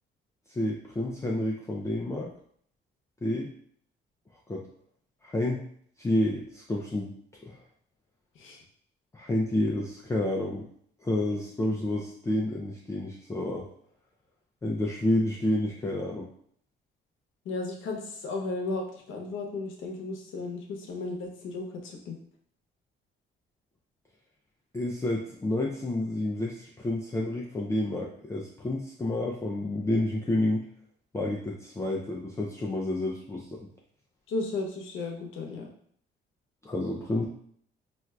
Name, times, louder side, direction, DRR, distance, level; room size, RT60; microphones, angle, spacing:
voice 1, 0.5-2.3 3.2-3.5 4.5-4.6 5.2-5.7 6.0-7.1 7.4-7.6 9.1-10.7 11.0-13.6 14.6-16.3 24.7-30.6 31.1-33.5 36.6-37.3, left 1 dB, 15° left, -3 dB, 0.4 m, -29 dB
voice 2, 17.4-22.2 34.3-35.7, left 3 dB, 80° left, 1 dB, 0.8 m, -34 dB
4.3 x 2.4 x 2.3 m, 0.63 s
cardioid pair, 90°, 20 cm